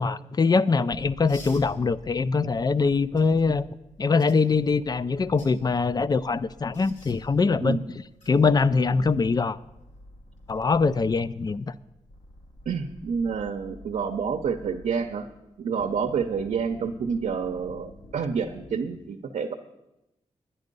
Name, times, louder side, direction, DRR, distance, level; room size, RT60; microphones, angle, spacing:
voice 1, 0.0-3.6 4.0-7.8 8.3-9.6 10.5-11.7, left 4 dB, 35° left, 17 dB, 0.4 m, -23 dB
sound 1, 0.9-19.0, left 1 dB, 70° left, 1.1 m, -49 dB
sound 2, 1.3-1.7 3.2-3.3 4.2-4.4 5.2-5.5 6.7-7.2 8.2-8.3 10.4-10.6, left 1 dB, 85° left, 2.2 m, -47 dB
voice 2, 7.6-7.9 12.7-15.3 15.6-19.5, right 6 dB, 85° right, 4 dB, 0.7 m, -28 dB
11.0 x 9.9 x 5.3 m, 0.92 s
wide cardioid pair, 95°, 12 cm